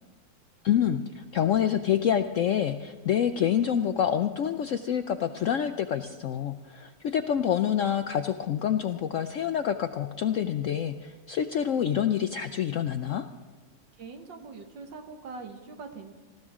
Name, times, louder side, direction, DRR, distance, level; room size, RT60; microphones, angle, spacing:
voice 1, 0.6-13.2, left 9 dB, 85° left, 8 dB, 0.7 m, -27 dB
voice 2, 14.0-16.1, right 4 dB, 85° right, 5 dB, 2.1 m, -42 dB
19.5 x 15.5 x 3.7 m, 1.3 s
omnidirectional pair, 1.9 m